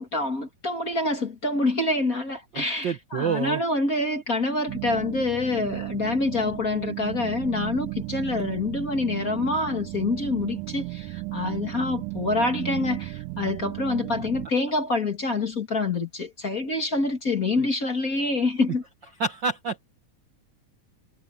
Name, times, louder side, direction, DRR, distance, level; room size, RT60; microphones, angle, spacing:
voice 1, 0.0-18.8, left 3 dB, 30° left, 2.3 m, -26 dB
voice 2, 2.5-3.6 17.5-17.7 19.2-19.9, right 5 dB, 50° right, 1.5 m, -28 dB
sound 1, 4.7-14.5, right 22 dB, 80° right, 2.0 m, -35 dB
omnidirectional pair, 3.5 m